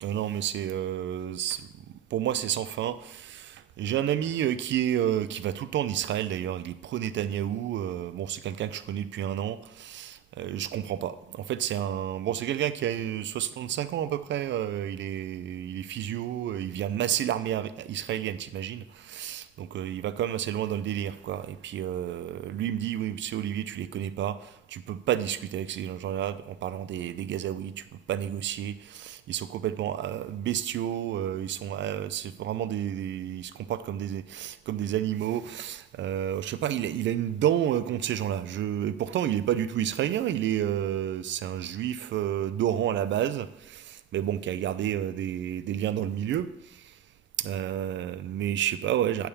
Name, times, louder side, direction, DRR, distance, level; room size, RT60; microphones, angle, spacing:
voice 1, 0.0-1.9 2.1-47.0 47.4-49.3, right 11 dB, 65° right, 0.5 m, -30 dB
9.5 x 3.5 x 7.0 m
cardioid pair, 90°, 20 cm